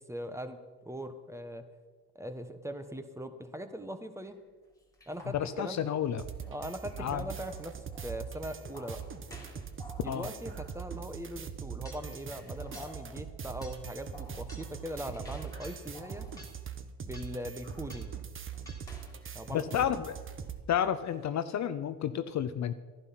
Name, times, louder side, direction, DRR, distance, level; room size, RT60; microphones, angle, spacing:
voice 1, 0.0-1.7 2.1-4.4 5.1-5.8 6.5-7.7 8.0-9.0 10.0-16.3 17.0-18.1 19.3-19.9, equal, 5° right, 9 dB, 1.2 m, -40 dB
sound 1, 4.2-4.3 4.9-5.9 6.3-11.3 11.6-16.7 17.1-19.5 20.0-20.5 20.8-21.3, left 1 dB, 10° left, 3.4 m, -54 dB
voice 2, 5.3-6.2 7.0-7.2 10.1-10.3 19.5-20.1 20.7-22.7, left 9 dB, 45° left, 11 dB, 0.7 m, -31 dB
sound 2, 6.2-20.6, right 7 dB, 30° right, 1.1 m, -42 dB
11.5 x 11.0 x 6.0 m, 1.3 s
supercardioid pair, 80°, 40 cm